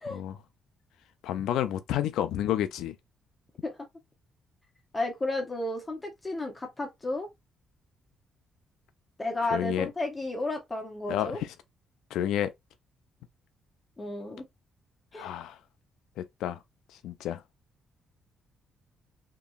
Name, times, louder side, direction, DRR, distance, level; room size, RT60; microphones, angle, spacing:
voice 1, 0.1-0.4 1.2-2.9 9.5-9.9 11.1-11.5 12.1-12.5 15.1-15.6 16.2-16.6 17.0-17.4, left 11 dB, 85° left, 0.4 m, -30 dB
voice 2, 4.9-7.3 9.2-11.4 14.0-14.4 15.1-15.3, left 2 dB, 20° left, 0.9 m, -32 dB
2.9 x 2.5 x 2.3 m
cardioid pair, 90°, 0 cm